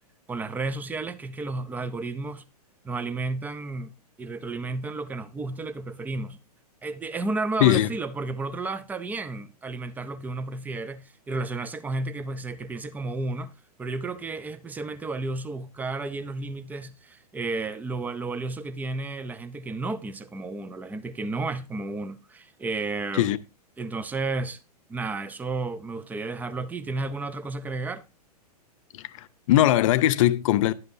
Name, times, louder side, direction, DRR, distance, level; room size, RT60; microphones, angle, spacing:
voice 1, 0.3-2.4 2.8-3.9 4.2-6.4 6.8-13.5 13.8-23.3 23.8-24.6 24.9-28.0, right 3 dB, 10° right, 0.4 m, -32 dB
voice 2, 7.6-7.9 23.1-23.4 28.9-30.7, left 13 dB, 55° left, 0.6 m, -21 dB
11.0 x 7.8 x 2.6 m
hypercardioid pair, 120°, 20 cm